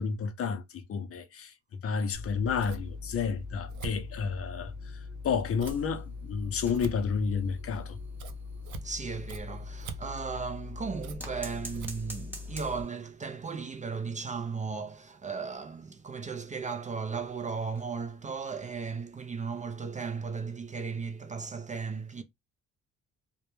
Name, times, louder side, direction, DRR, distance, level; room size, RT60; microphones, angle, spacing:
voice 1, 0.0-8.0, left 6 dB, 50° left, 0.5 m, -31 dB
Scissors, 2.1-12.8, left 2 dB, 75° right, 0.6 m, -41 dB
sound 1, 5.6-10.4 11.2-13.1 13.4-13.5 13.8-13.9 14.3-14.4 15.0-18.1 18.5-18.7 19.9-20.0, right 1 dB, 5° right, 0.8 m, -50 dB
voice 2, 8.8-22.2, right 5 dB, 25° right, 0.3 m, -36 dB
2.1 x 2.1 x 2.9 m
cardioid pair, 90°, 30 cm